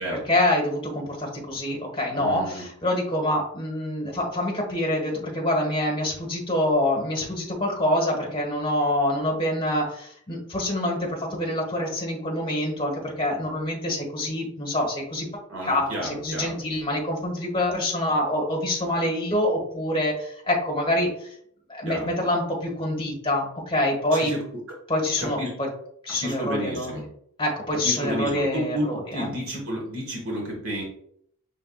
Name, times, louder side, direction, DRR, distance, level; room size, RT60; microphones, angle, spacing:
voice 1, 0.0-15.3 15.6-21.3 21.7-24.3 24.9-25.7 26.0-26.9 27.4-29.3 29.5-29.6, left 1 dB, 25° left, -2 dB, 1.3 m, -26 dB
voice 2, 2.1-2.6 15.5-16.5 21.8-22.1 24.1-24.4 25.2-25.5 26.1-27.0 27.7-30.8, equal, 70° right, -1 dB, 1.4 m, -31 dB
5.5 x 3.4 x 2.3 m, 0.67 s
head